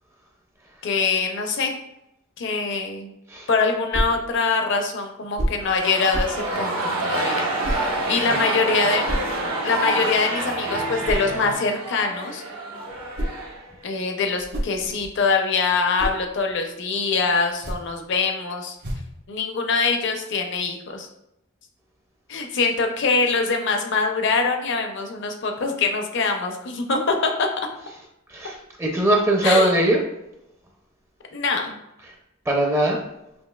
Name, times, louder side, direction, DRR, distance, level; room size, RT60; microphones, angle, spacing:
voice 1, 0.8-1.7 2.4-3.1 3.5-7.8 8.1-12.4 13.8-18.7 19.3-21.1 22.3-27.5 29.4-29.9 31.3-31.8, left 4 dB, 60° left, 3 dB, 0.6 m, -24 dB
sound 1, 3.9-4.2 5.3-5.7 6.1-6.4 7.6-7.9 9.1-9.3 11.0-11.3 12.9-13.5 14.2-15.2 15.7-16.2 17.5-18.0 18.8-19.2, equal, 55° right, 0.8 m, -29 dB
sound 2, 5.6-14.0, right 2 dB, 90° right, 1.0 m, -28 dB
sound 3, 6.5-11.5, left 2 dB, 90° left, 1.2 m, -38 dB
voice 2, 28.8-30.0 32.5-33.0, right 1 dB, 15° right, 0 dB, 0.4 m, -20 dB
5.2 x 2.7 x 2.3 m, 0.86 s
head